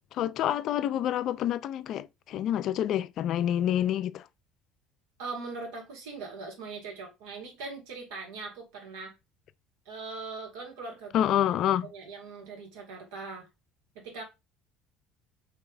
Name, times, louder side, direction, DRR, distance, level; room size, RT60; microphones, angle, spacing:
voice 1, 0.1-4.2 11.1-11.9, left 11 dB, 60° left, 0.3 m, -27 dB
voice 2, 5.2-9.1 9.8-11.3 11.8-13.5 13.9-14.2, right 4 dB, 85° right, 1.8 m, -41 dB
3.2 x 2.9 x 4.0 m
supercardioid pair, 90°, 0 cm